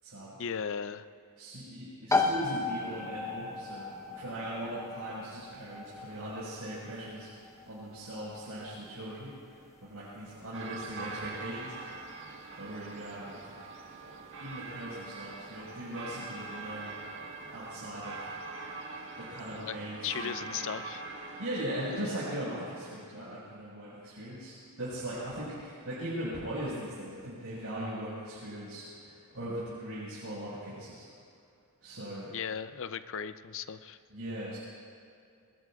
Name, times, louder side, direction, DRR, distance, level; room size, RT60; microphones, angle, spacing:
voice 1, 0.4-1.0 19.5-19.8 20.0-21.0 21.9-22.1 32.3-34.0, left 7 dB, 60° left, 12 dB, 0.6 m, -37 dB
voice 2, 1.4-11.8 12.6-13.6 14.4-17.0 17.5-18.3 19.2-20.8 21.4-31.1 31.8-32.3 34.1-34.6, right 1 dB, 80° right, -9 dB, 5.2 m, -39 dB
sound 1, 2.1-16.6, left 3 dB, 15° left, 0.9 m, -37 dB
sound 2, 10.5-22.1, right 3 dB, 60° right, 1.6 m, -43 dB
25.5 x 21.5 x 2.4 m, 2.3 s
head